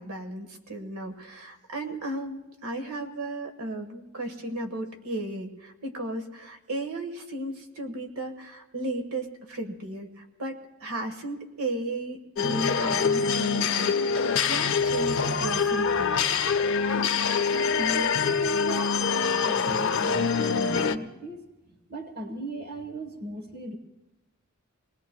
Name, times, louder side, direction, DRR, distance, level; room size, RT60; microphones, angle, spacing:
voice 1, 0.0-14.0 14.5-16.2, right 2 dB, 80° right, 5 dB, 1.5 m, -35 dB
sound 1, 12.4-21.0, left 5 dB, 55° left, 0.6 m, -25 dB
voice 2, 17.8-23.8, right 1 dB, 45° right, 6 dB, 1.2 m, -37 dB
26.5 x 19.5 x 2.3 m, 1.0 s
head